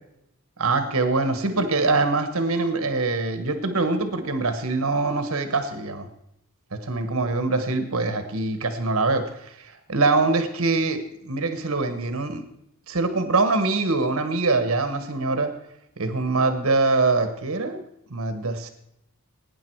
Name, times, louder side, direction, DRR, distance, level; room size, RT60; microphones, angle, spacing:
voice 1, 0.6-6.1 6.8-12.4 12.9-15.5 16.0-17.8 18.1-18.7, right 3 dB, 70° right, 9 dB, 1.3 m, -24 dB
18.5 x 9.4 x 4.6 m, 0.81 s
head